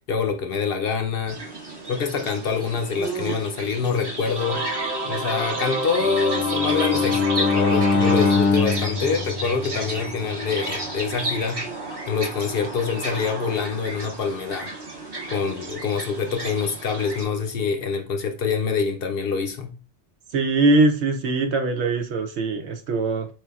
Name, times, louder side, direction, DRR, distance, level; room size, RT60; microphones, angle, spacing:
voice 1, 0.1-1.4 1.9-4.6 5.0-11.6 12.1-14.7 15.3-19.7, left 6 dB, 60° left, 0.7 m, -25 dB
sound 1, 1.3-17.2, right 1 dB, 25° right, 0.7 m, -33 dB
Singing / Musical instrument, 4.3-9.2, right 3 dB, 40° right, 1.1 m, -30 dB
Bowed string instrument, 6.0-10.2, left 4 dB, 85° left, 1.0 m, -23 dB
voice 2, 20.3-23.3, right 3 dB, 75° right, 0.9 m, -21 dB
4.3 x 3.4 x 2.3 m
omnidirectional pair, 1.2 m